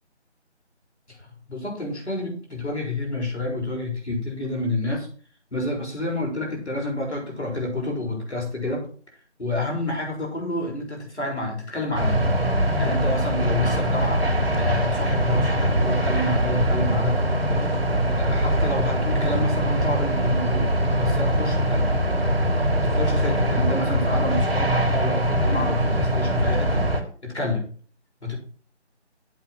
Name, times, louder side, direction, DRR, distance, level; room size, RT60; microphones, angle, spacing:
voice 1, 1.1-5.1 5.5-8.9 9.4-12.3 12.6-17.2 17.5-17.7 18.2-22.0 22.7-26.9 27.2-27.7 28.2-28.3, left 2 dB, 70° left, -1 dB, 6.4 m, -29 dB
sound 1, 11.9-27.0, right 1 dB, 55° right, 2.5 m, -22 dB
8.3 x 7.8 x 6.4 m, 0.43 s
figure-of-eight pair, 170°, 35 cm